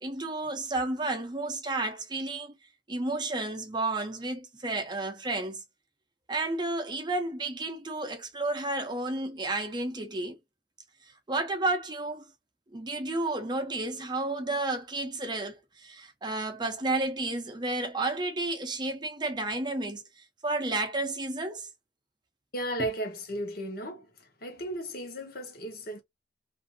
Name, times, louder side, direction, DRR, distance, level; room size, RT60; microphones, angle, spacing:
voice 1, 0.0-2.5 2.9-5.6 6.3-10.4 11.3-12.2 12.7-20.0 20.4-21.7, right 2 dB, 25° right, 0.6 m, -31 dB
voice 2, 22.5-24.0 24.4-26.0, right 1 dB, 55° left, 1.0 m, -35 dB
2.6 x 2.5 x 2.4 m
head